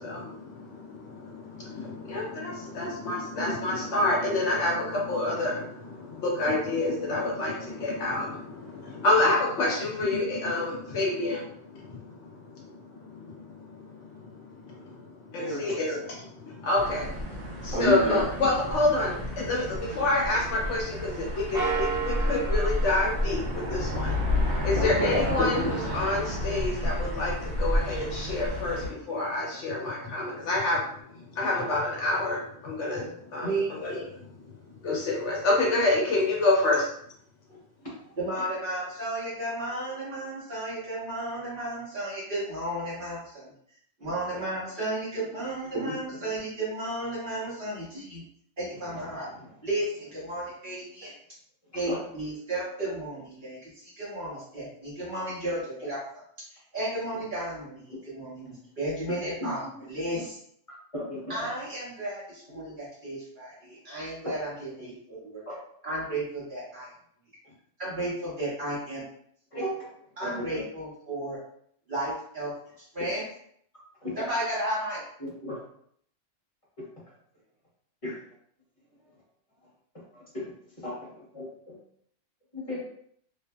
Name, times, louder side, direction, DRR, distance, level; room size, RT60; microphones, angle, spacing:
voice 1, 0.0-30.9 31.1-34.0 34.8-36.9, left 2 dB, 75° left, -2 dB, 1.0 m, -28 dB
sound 1, 16.8-28.9, left 1 dB, 80° right, 1.2 m, -31 dB
voice 2, 17.7-18.2 24.8-25.1 37.8-37.9 44.0-44.4 45.7-46.0 51.8-52.0 59.4-59.5 60.9-61.5 69.5-69.6 70.2-70.6 74.0-74.2 75.2-75.6 78.0-78.1 80.3-80.5 80.8-80.9 81.4-81.5 82.5-82.8, left 1 dB, 30° left, -8 dB, 1.0 m, -31 dB
sound 2, 21.5-24.2, right 5 dB, 5° right, 0.6 m, -33 dB
voice 3, 38.2-43.5 44.0-48.2 48.6-49.3 49.6-51.1 51.7-53.7 54.0-56.0 56.5-60.4 61.3-65.4 65.8-66.9 67.8-69.0 69.6-69.7 70.2-71.4 71.9-72.5 72.9-73.2 74.2-75.0, right 1 dB, 45° right, -8 dB, 1.2 m, -33 dB
2.8 x 2.4 x 2.2 m, 0.66 s
omnidirectional pair, 1.3 m